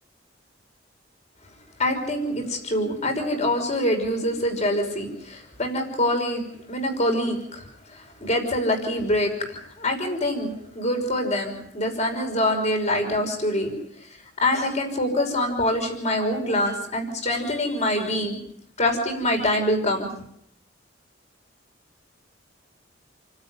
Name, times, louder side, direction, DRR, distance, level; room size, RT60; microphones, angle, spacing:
voice 1, 1.8-6.4 6.7-7.6 7.9-13.7 14.4-18.4 18.8-20.1, left 1 dB, 40° left, 4 dB, 5.6 m, -25 dB
29.0 x 13.0 x 9.7 m, 0.74 s
head